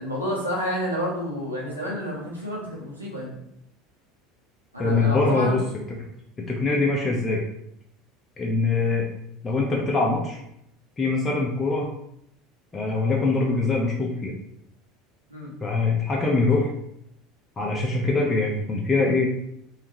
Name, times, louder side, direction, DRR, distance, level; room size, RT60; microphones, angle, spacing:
voice 1, 0.0-3.4 4.7-5.6 15.3-15.5, equal, 85° right, -5 dB, 1.0 m, -29 dB
voice 2, 4.8-5.6 6.5-7.4 8.4-9.1 9.4-10.4 11.0-11.9 12.7-14.3 15.6-16.7 17.6-19.3, left 3 dB, 20° left, -3 dB, 0.6 m, -23 dB
3.5 x 2.8 x 3.0 m, 0.76 s
figure-of-eight pair, 70°, 0 cm